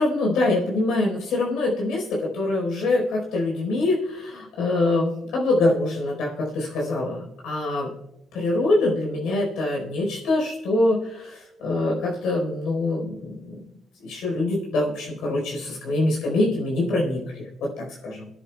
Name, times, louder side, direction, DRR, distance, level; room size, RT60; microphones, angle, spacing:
voice 1, 0.0-7.9 8.3-13.6 14.0-18.3, left 2 dB, 85° left, -2 dB, 4.2 m, -24 dB
29.5 x 10.0 x 2.3 m, 0.92 s
cardioid pair, 90°, 0 cm